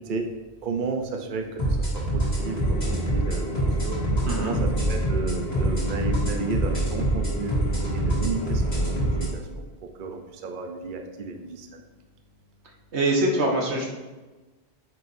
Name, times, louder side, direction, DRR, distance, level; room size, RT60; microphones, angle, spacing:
voice 1, 0.6-1.9 2.1-3.5 3.8-4.0 4.4-7.6 7.9-9.6 10.0-11.8, right 4 dB, 55° right, 4 dB, 0.8 m, -33 dB
sound 1, 1.6-9.3, right 1 dB, 40° left, 2.2 m, -25 dB
sound 2, 2.3-9.3, left 1 dB, 65° left, 1.4 m, -34 dB
voice 2, 4.3-4.6 12.9-13.9, right 1 dB, 90° right, 0 dB, 1.5 m, -24 dB
9.4 x 6.4 x 2.7 m, 1.2 s
omnidirectional pair, 1.1 m